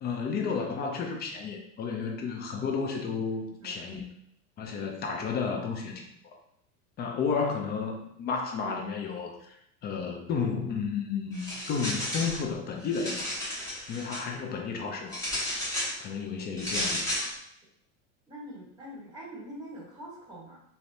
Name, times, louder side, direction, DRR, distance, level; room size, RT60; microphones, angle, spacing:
voice 1, 0.0-4.0 4.6-6.4 7.0-9.5 9.8-13.4 13.9-15.2 16.0-17.1, left 5 dB, 25° left, 2 dB, 0.4 m, -32 dB
voice 2, 3.2-3.8 18.3-20.6, equal, 10° right, -4 dB, 1.1 m, -44 dB
sound 1, 11.3-12.4 12.8-14.2 15.1-16.0 16.6-17.3, left 1 dB, 10° left, 0.8 m, -33 dB
3.1 x 2.0 x 2.6 m, 0.73 s
supercardioid pair, 110°, 42 cm